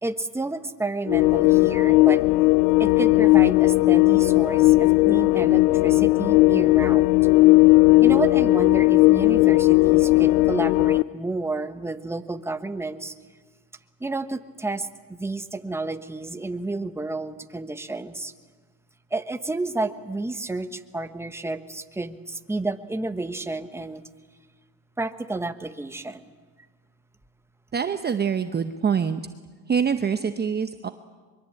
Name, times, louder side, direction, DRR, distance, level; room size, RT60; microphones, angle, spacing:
voice 1, 0.0-2.2 2.8-7.2 8.0-13.1 14.0-18.3 19.1-24.1 25.0-26.2, right 2 dB, 5° right, 8 dB, 1.2 m, -31 dB
sound 1, 1.1-11.0, left 21 dB, 90° left, 0.7 m, -17 dB
voice 2, 27.7-29.2 29.7-30.9, right 6 dB, 25° right, 8 dB, 0.9 m, -25 dB
23.0 x 22.5 x 8.6 m, 1.4 s
supercardioid pair, 105°, 44 cm